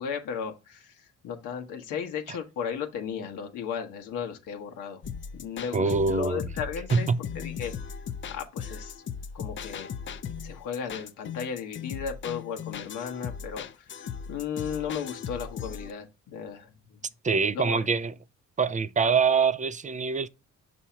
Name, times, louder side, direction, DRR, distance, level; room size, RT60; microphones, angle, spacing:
voice 1, 0.0-5.0 5.3-7.7 8.3-9.0 9.3-9.9 10.4-17.1 17.5-17.8, left 7 dB, 85° left, 1.1 m, -35 dB
sound 1, 5.0-15.9, left 7 dB, 40° left, 0.5 m, -38 dB
voice 2, 5.7-6.4 6.9-7.2 17.2-18.1 18.6-20.3, right 5 dB, 25° right, 0.4 m, -24 dB
6.2 x 2.8 x 5.6 m
cardioid pair, 90°, 30 cm